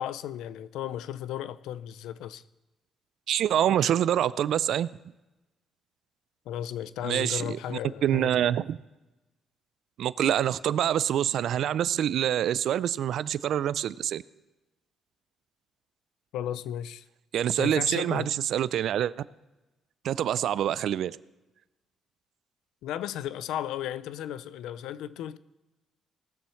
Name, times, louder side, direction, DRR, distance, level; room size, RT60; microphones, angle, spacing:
voice 1, 0.0-2.4 6.5-8.5 16.3-17.0 17.6-18.3 22.8-25.4, left 11 dB, 90° left, 0.4 m, -35 dB
voice 2, 3.3-4.9 7.0-8.8 10.0-14.2 17.3-19.1 20.0-21.2, right 10 dB, 75° right, 0.3 m, -26 dB
19.0 x 7.0 x 4.4 m
cardioid pair, 90°, 0 cm